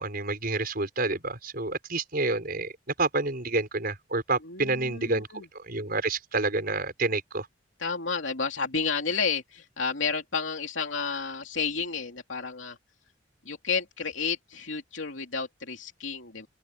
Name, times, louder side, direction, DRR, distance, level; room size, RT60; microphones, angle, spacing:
voice 1, 0.0-2.7 3.0-5.3 5.5-7.5, right 3 dB, 50° right, 5.9 m, -28 dB
voice 2, 4.4-5.4 7.8-12.8 13.4-16.5, left 5 dB, 80° left, 2.9 m, -31 dB
open air
head